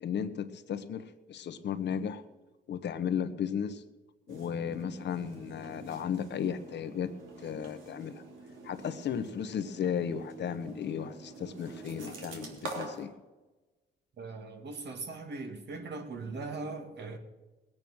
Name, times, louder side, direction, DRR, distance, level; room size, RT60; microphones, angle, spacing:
voice 1, 0.0-2.2 2.7-3.8 4.3-7.1 7.4-8.2 8.6-13.1, left 8 dB, 60° left, 10 dB, 1.1 m, -35 dB
sound 1, 4.3-13.0, right 2 dB, 80° right, 3.1 m, -46 dB
voice 2, 14.2-17.2, right 3 dB, 60° right, 5 dB, 2.4 m, -40 dB
19.5 x 9.0 x 6.3 m, 1.2 s
cardioid pair, 90°, 20 cm